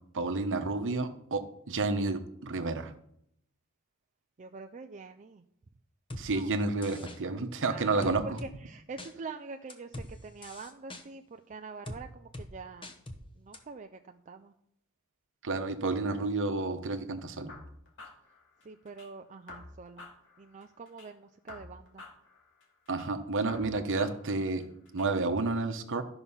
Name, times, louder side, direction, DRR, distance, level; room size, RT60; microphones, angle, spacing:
voice 1, 0.1-2.9 6.2-8.2 15.4-17.5 22.9-24.6 24.9-26.0, right 3 dB, 60° right, 8 dB, 1.0 m, -30 dB
voice 2, 4.4-5.4 6.2-6.5 7.7-12.9 13.4-14.5 18.6-20.1 20.4-22.0, right 4 dB, 35° right, 6 dB, 0.5 m, -45 dB
sound 1, 6.1-6.2 6.8-7.2 8.0-8.5 9.0-9.1 9.7-10.1 10.4-11.0 11.9-12.0 12.3-12.5 12.8-13.2 13.5-13.6, left 1 dB, 25° left, 1.1 m, -42 dB
sound 2, 17.5-19.1 19.5-21.1 21.5-23.1 23.5-25.1, left 3 dB, 60° left, 2.4 m, -50 dB
13.0 x 5.8 x 5.6 m, 0.73 s
head